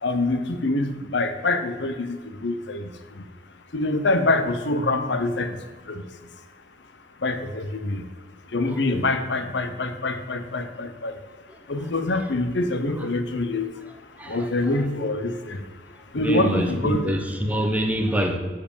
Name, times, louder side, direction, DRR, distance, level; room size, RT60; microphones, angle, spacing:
voice 1, 0.0-2.9 3.7-5.5 5.9-6.0 7.2-8.0 8.5-11.2 11.7-13.7 14.3-15.6 16.1-17.2, left 2 dB, 70° left, 9 dB, 0.9 m, -25 dB
voice 2, 16.1-18.4, equal, 10° right, 3 dB, 0.9 m, -25 dB
9.4 x 4.9 x 7.2 m, 1.5 s
head